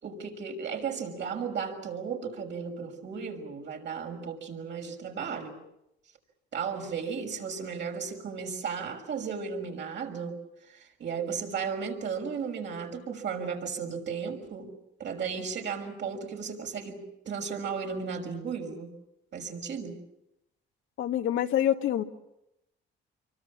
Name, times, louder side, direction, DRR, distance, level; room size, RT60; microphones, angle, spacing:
voice 1, 0.0-5.6 6.5-10.4 10.6-14.7 15.0-18.9 19.3-20.0, right 6 dB, 65° right, 2 dB, 6.1 m, -35 dB
voice 2, 21.0-22.0, left 11 dB, 80° left, 5 dB, 1.8 m, -26 dB
27.5 x 24.0 x 7.4 m, 0.84 s
cardioid pair, 90°, 20 cm